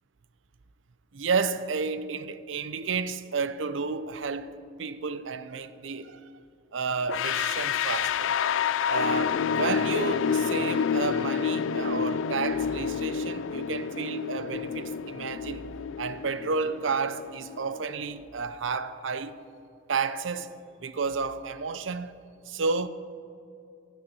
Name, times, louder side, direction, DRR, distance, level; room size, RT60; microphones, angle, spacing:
voice 1, 1.1-4.5 4.8-6.2 6.7-8.3 8.9-15.7 16.0-19.4 19.9-20.5 20.8-22.2 22.5-22.9, right 4 dB, 80° right, 0.6 m, -31 dB
sound 1, 7.1-18.0, left 7 dB, 80° left, 0.3 m, -29 dB
16.0 x 6.9 x 7.7 m
head